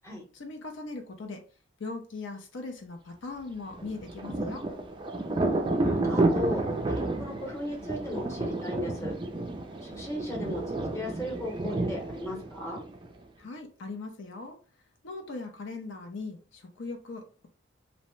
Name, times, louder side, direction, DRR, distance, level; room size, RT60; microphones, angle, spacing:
voice 1, 0.3-1.4 1.8-4.7 13.4-14.6 15.0-17.5, left 3 dB, 75° left, 0.5 m, -39 dB
Thunder, 3.7-13.2, right 2 dB, 25° right, 0.3 m, -31 dB
voice 2, 5.8-9.1 9.8-12.8, equal, 15° left, 0.8 m, -36 dB
2.6 x 2.0 x 3.0 m
head